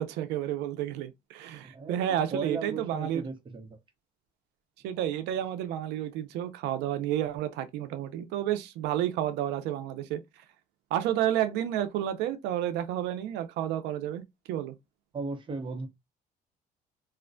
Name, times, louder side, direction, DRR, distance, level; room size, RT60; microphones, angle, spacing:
voice 1, 0.0-3.2 4.8-10.2 10.9-14.2 14.5-14.8, right 11 dB, 90° right, 0.4 m, -31 dB
voice 2, 1.6-3.8 15.1-15.9, right 4 dB, 30° right, 0.6 m, -36 dB
2.4 x 2.1 x 2.5 m
cardioid pair, 110°, 17 cm